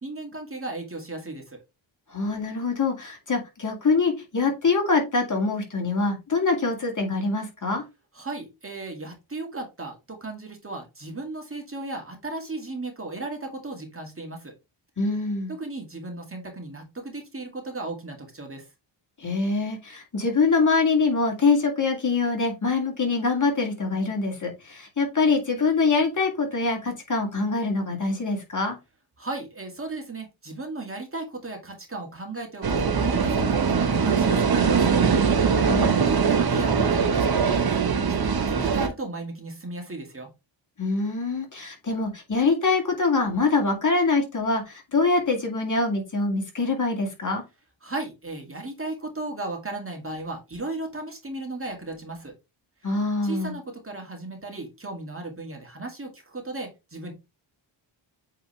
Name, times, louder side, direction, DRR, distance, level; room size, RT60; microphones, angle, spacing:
voice 1, 0.0-1.6 8.1-14.5 15.5-18.6 29.2-35.0 36.0-37.8 38.1-40.3 47.8-52.3 53.2-57.1, right 2 dB, 25° right, 3 dB, 1.9 m, -35 dB
voice 2, 2.1-7.8 15.0-15.5 19.2-28.8 35.6-36.0 40.8-47.4 52.8-53.5, left 3 dB, 40° left, 2 dB, 2.3 m, -24 dB
sound 1, 32.6-38.9, right 6 dB, 50° right, 1.1 m, -22 dB
8.3 x 3.8 x 3.3 m, 0.24 s
wide cardioid pair, 110°, 47 cm